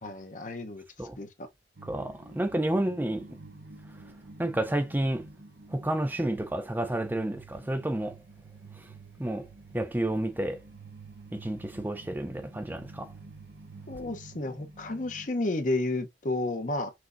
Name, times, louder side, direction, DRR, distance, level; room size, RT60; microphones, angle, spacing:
voice 1, 0.0-0.8 1.2-1.5 13.9-16.9, left 2 dB, 45° left, 0.8 m, -31 dB
voice 2, 1.8-3.2 4.4-5.2 5.7-8.1 9.2-9.5 9.7-10.6 11.3-13.1, right 1 dB, 10° right, 0.5 m, -30 dB
sound 1, 1.8-15.3, right 3 dB, 65° right, 0.8 m, -49 dB
6.1 x 2.8 x 2.5 m
head